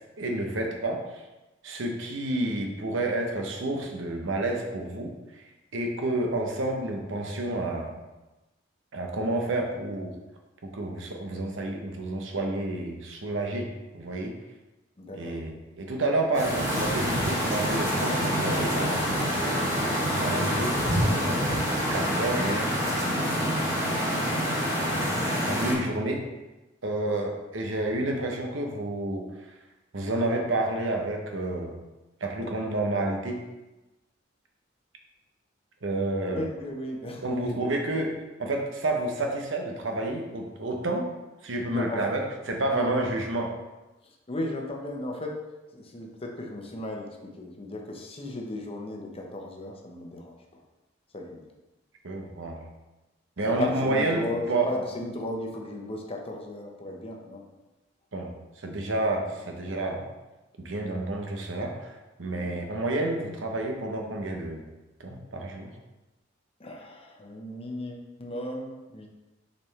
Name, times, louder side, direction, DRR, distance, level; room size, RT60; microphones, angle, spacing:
voice 1, 0.2-1.2 1.6-5.4 5.7-7.9 8.9-10.1 10.6-14.3 15.2-19.1 20.0-21.5 21.9-22.8 24.8-26.3 26.8-29.3 29.9-31.8 32.2-33.4 35.8-36.4 37.2-38.1 38.4-41.1 41.4-43.5 52.0-52.6 53.4-54.7 58.1-60.1 60.6-64.7 65.0-65.7, right 2 dB, 85° right, 2 dB, 1.0 m, -30 dB
voice 2, 15.0-15.4 27.1-27.3 36.2-37.9 41.7-42.1 42.7-43.1 44.0-45.4 45.7-50.6 51.1-51.4 53.5-57.4 62.3-62.5 66.6-69.1, left 1 dB, 30° left, 0 dB, 0.9 m, -36 dB
sound 1, 16.3-25.7, equal, 15° right, 1.7 m, -26 dB
6.9 x 4.3 x 3.4 m, 1.1 s
head